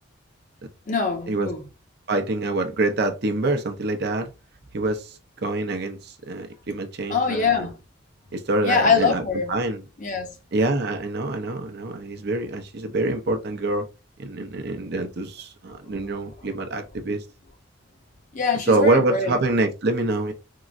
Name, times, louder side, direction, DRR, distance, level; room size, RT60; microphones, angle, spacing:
voice 1, 0.9-1.6 7.1-7.7 8.6-9.5 10.0-10.3 15.9-16.0 18.3-19.4, left 5 dB, 40° left, 0.6 m, -23 dB
voice 2, 2.1-4.3 4.7-7.7 8.3-9.2 9.5-9.8 10.5-13.9 14.2-17.2 18.7-20.3, right 2 dB, 55° right, 0.5 m, -25 dB
3.7 x 2.0 x 2.4 m
head